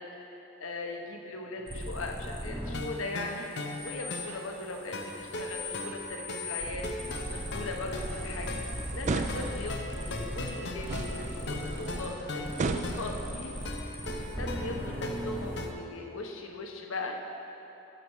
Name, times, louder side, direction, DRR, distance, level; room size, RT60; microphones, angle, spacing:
voice 1, 0.0-3.5 3.8-8.5 8.9-14.0 14.4-17.2, left 2 dB, 70° left, 2 dB, 1.0 m, -39 dB
sound 1, 1.7-2.9 3.2-10.5 10.8-12.1 12.4-15.7, equal, 10° right, 0.8 m, -38 dB
sound 2, 2.7-15.7, left 2 dB, 55° left, 0.7 m, -40 dB
sound 3, 8.0-13.7, right 3 dB, 35° right, 0.3 m, -37 dB
12.0 x 6.6 x 4.7 m, 3.0 s
head